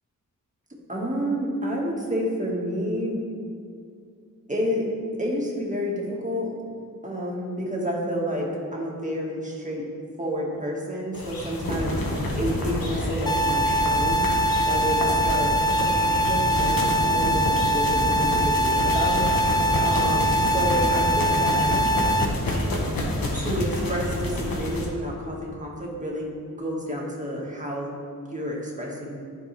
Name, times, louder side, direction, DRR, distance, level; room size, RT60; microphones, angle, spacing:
voice 1, 0.9-3.2 4.5-4.9 5.2-6.5 7.0-9.9 10.2-12.0 12.4-14.3 14.7-15.5 15.8-19.3 19.8-21.8 23.3-26.3 26.6-27.9 28.3-29.2, equal, 20° right, -3 dB, 1.9 m, -29 dB
sound 1, 11.1-24.8, left 1 dB, 85° left, 1.3 m, -28 dB
sound 2, 13.3-22.3, right 1 dB, 10° left, 0.3 m, -23 dB
12.5 x 4.4 x 3.4 m, 2.4 s
wide cardioid pair, 75°, 34 cm